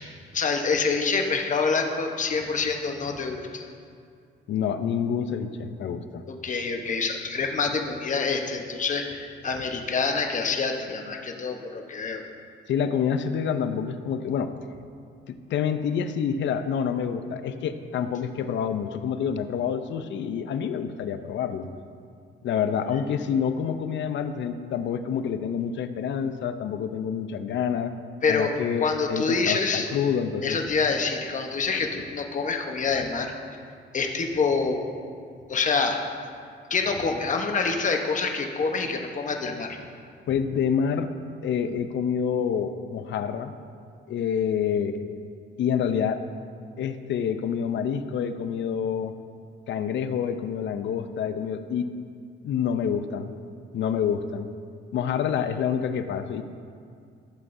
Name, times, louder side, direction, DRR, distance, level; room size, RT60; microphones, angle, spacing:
voice 1, 0.3-3.7 6.3-12.2 28.2-28.5 28.8-29.9 30.4-33.3 33.9-34.8 35.5-36.0 36.7-39.8, left 4 dB, 40° left, 3 dB, 1.0 m, -26 dB
voice 2, 4.5-6.2 12.7-14.5 15.3-21.7 22.4-27.9 28.3-30.6 40.3-41.1 41.4-43.5 44.1-45.0 45.6-46.2 46.8-49.1 49.7-51.9 52.4-53.3 53.7-54.5 54.9-56.4, left 7 dB, 70° left, 10 dB, 0.6 m, -27 dB
14.5 x 7.5 x 2.7 m, 2.3 s
cardioid pair, 90°, 20 cm